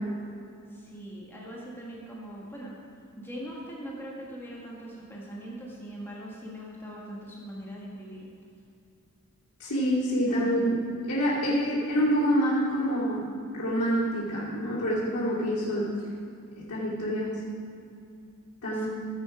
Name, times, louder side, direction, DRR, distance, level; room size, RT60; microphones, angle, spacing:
voice 1, 0.7-2.8 3.2-8.3 10.3-10.7 11.4-11.5 18.7-18.9, equal, 10° left, -5 dB, 1.7 m, -41 dB
voice 2, 9.6-10.7 11.1-13.3 13.5-15.9 16.6-17.4 18.6-18.9, equal, 90° left, -10 dB, 3.0 m, -26 dB
15.5 x 8.1 x 5.0 m, 2.6 s
head